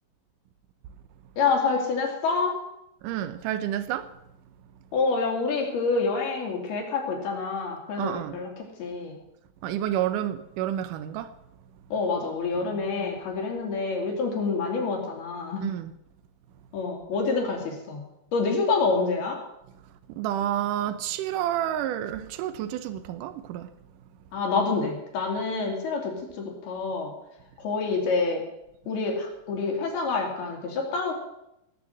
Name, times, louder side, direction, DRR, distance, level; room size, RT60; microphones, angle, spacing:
voice 1, 1.4-2.6 4.9-8.5 8.8-9.2 11.9-15.6 16.7-18.0 18.3-19.4 24.3-27.1 27.6-28.4 28.9-31.1, left 4 dB, 70° left, 4.3 m, -27 dB
voice 2, 3.0-4.1 8.0-8.4 9.6-11.4 12.6-13.2 15.6-15.9 20.1-23.7, right 11 dB, 85° right, 1.8 m, -30 dB
19.5 x 7.0 x 7.8 m
omnidirectional pair, 4.8 m